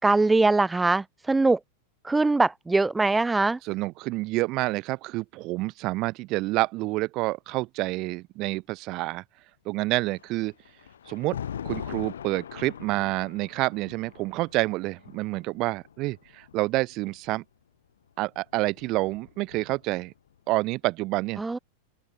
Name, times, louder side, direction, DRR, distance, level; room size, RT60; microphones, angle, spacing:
voice 1, 0.0-1.6 2.0-3.6 21.4-21.6, right 3 dB, 10° right, 0.4 m, -22 dB
voice 2, 3.6-9.2 9.6-10.5 11.1-11.4 11.6-17.4 18.2-20.1 20.5-21.4, right 21 dB, 40° right, 3.0 m, -28 dB
Thunder, 10.1-17.3 18.3-20.1, left 9 dB, 65° left, 3.5 m, -41 dB
open air
figure-of-eight pair, 90°, 0 cm